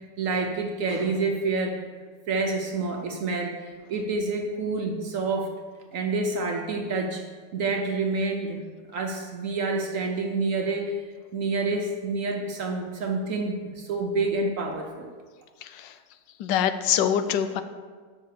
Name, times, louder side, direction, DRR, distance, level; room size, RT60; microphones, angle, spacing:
voice 1, 0.2-1.8 2.3-5.5 5.9-7.2 7.5-8.6 8.9-11.0 11.3-15.1, right 3 dB, 60° right, 2 dB, 0.9 m, -28 dB
voice 2, 16.4-17.6, left 9 dB, 85° left, 10 dB, 1.2 m, -24 dB
6.1 x 5.4 x 6.6 m, 1.5 s
omnidirectional pair, 1.9 m